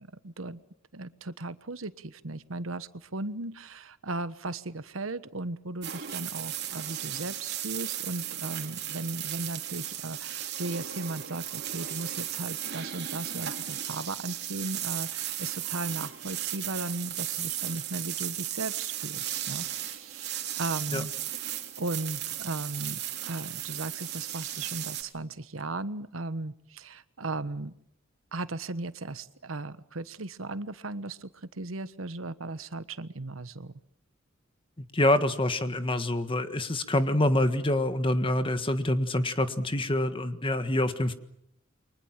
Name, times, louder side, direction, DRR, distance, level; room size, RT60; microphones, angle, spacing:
voice 1, 0.2-0.6 0.9-27.7 28.3-31.3 31.6-33.7, right 2 dB, 85° right, 13 dB, 1.3 m, -37 dB
sound 1, 5.8-25.0, right 11 dB, 55° right, 3.5 m, -35 dB
voice 2, 34.9-41.1, left 1 dB, 25° left, 9 dB, 1.6 m, -26 dB
29.5 x 24.0 x 7.4 m, 0.76 s
head